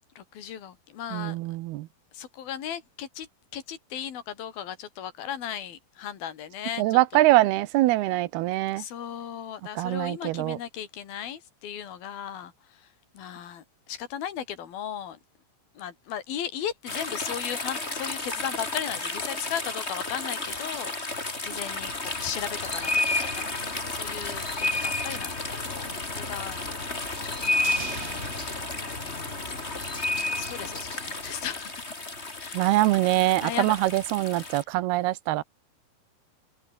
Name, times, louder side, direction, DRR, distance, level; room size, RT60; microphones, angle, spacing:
voice 1, 0.2-1.4 2.1-3.3 3.5-7.2 8.8-15.2 15.7-20.9 21.4-26.6 27.2-27.9 29.0-29.9 30.4-31.8 32.4-32.6 33.4-33.7, left 9 dB, 70° left, 4.7 m, -36 dB
voice 2, 1.1-1.9 6.8-8.8 9.8-10.6 32.5-35.4, right 17 dB, 85° right, 2.8 m, -23 dB
sound 1, 16.9-34.6, left 3 dB, 15° left, 3.1 m, -32 dB
sound 2, 27.6-30.0 30.3-30.4, right 6 dB, 45° right, 3.6 m, -42 dB
omnidirectional pair, 4.6 m